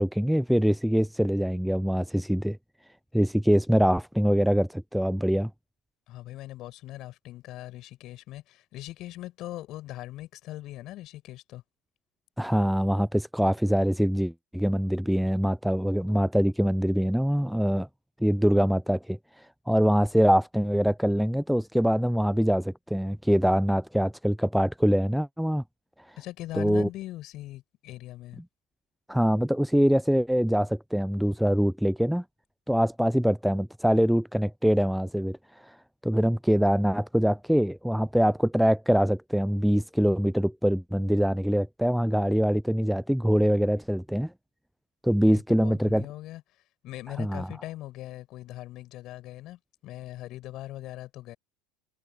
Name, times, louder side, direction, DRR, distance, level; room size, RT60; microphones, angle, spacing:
voice 1, 0.0-2.6 3.1-5.5 12.4-17.9 18.2-19.2 19.7-25.6 26.6-26.9 29.1-32.2 32.7-35.4 35.6-35.7 36.0-44.3 45.0-46.1 47.2-47.5, equal, ahead, 0.4 m, -24 dB
voice 2, 6.1-11.6 26.2-28.4 45.2-46.4 46.8-51.4, left 15 dB, 50° left, 5.4 m, -40 dB
hypercardioid pair, 80°, 0 cm